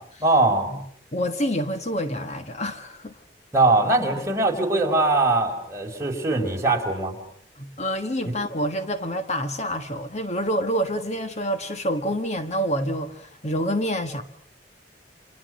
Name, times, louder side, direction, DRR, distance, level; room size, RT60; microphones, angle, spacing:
voice 1, 0.2-0.7 3.5-7.2 8.2-8.4, right 2 dB, 15° right, 4.8 m, -21 dB
voice 2, 1.1-3.2 7.6-14.2, equal, 40° left, 1.5 m, -27 dB
30.0 x 26.5 x 6.4 m
head